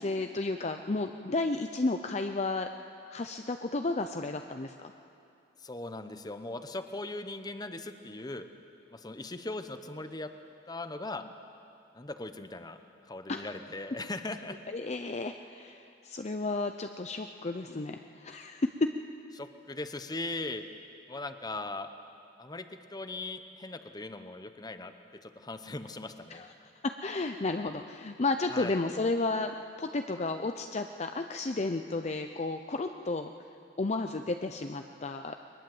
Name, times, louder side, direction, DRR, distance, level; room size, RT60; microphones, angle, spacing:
voice 1, 0.0-2.7 3.1-4.9 13.3-13.5 14.7-18.7 26.3-26.5 26.8-29.5 29.8-33.3 33.8-35.3, left 3 dB, 35° left, 6 dB, 0.6 m, -32 dB
voice 2, 5.6-8.5 8.9-10.3 10.7-11.3 11.9-12.8 13.0-14.6 19.3-20.6 21.1-21.9 22.4-22.7 22.9-24.9 25.2-26.4 28.5-28.8, left 2 dB, 20° left, 9 dB, 1.0 m, -39 dB
22.0 x 20.5 x 7.8 m, 2.7 s
head